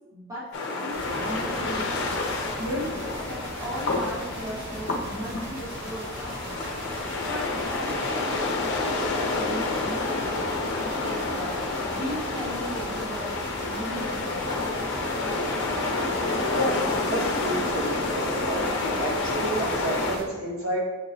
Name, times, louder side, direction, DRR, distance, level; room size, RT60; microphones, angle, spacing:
voice 1, 0.1-2.1 2.6-6.5 7.2-7.5 7.8-10.5 10.8-11.5 11.9-14.6, equal, 15° right, -8 dB, 1.3 m, -37 dB
sound 1, 0.5-20.2, left 3 dB, 55° left, 0.6 m, -29 dB
sound 2, 0.9-20.2, right 1 dB, 55° right, 0.8 m, -40 dB
voice 2, 16.4-16.8 17.1-18.7 19.0-20.8, right 1 dB, 80° right, -5 dB, 1.3 m, -30 dB
6.7 x 2.9 x 2.7 m, 1.4 s
head